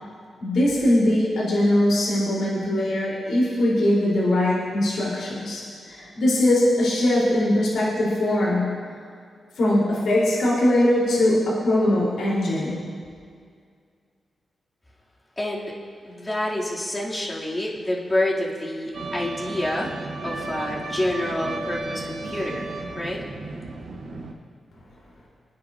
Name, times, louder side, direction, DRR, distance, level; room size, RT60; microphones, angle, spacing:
voice 1, 0.4-8.7 9.6-12.8, left 1 dB, 80° left, -7 dB, 4.1 m, -21 dB
voice 2, 15.4-15.8 16.0-19.9 20.2-23.3, left 1 dB, 25° left, -6 dB, 2.9 m, -28 dB
sound 1, 18.9-24.3, right 2 dB, 70° right, 1.8 m, -33 dB
27.5 x 9.5 x 2.8 m, 2.2 s
cardioid pair, 60°, 0 cm